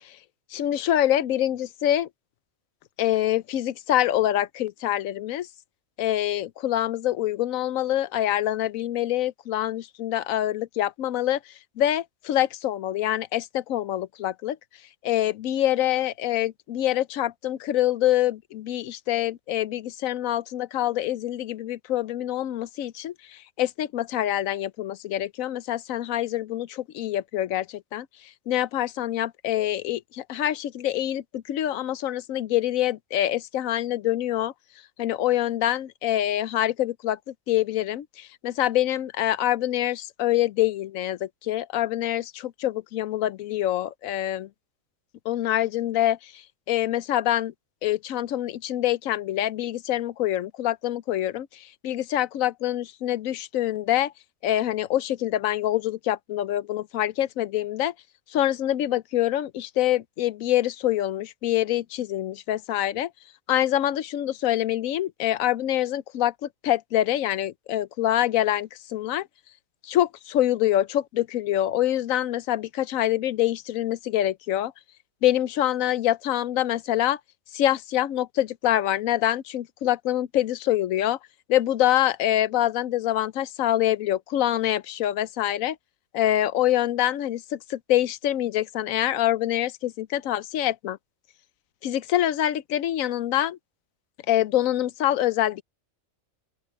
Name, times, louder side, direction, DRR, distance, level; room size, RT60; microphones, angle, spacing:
voice 1, 0.5-2.1 3.0-5.5 6.0-11.4 11.8-14.6 15.0-28.1 28.5-34.5 35.0-37.2 37.5-44.5 45.3-46.3 46.7-47.5 47.8-54.1 54.4-57.9 58.3-63.1 63.5-69.3 69.8-74.7 75.2-77.2 77.5-81.2 81.5-85.8 86.1-91.0 91.8-93.6 94.3-95.6, left 13 dB, 85° left, 1.0 m, -25 dB
open air
omnidirectional pair, 1.4 m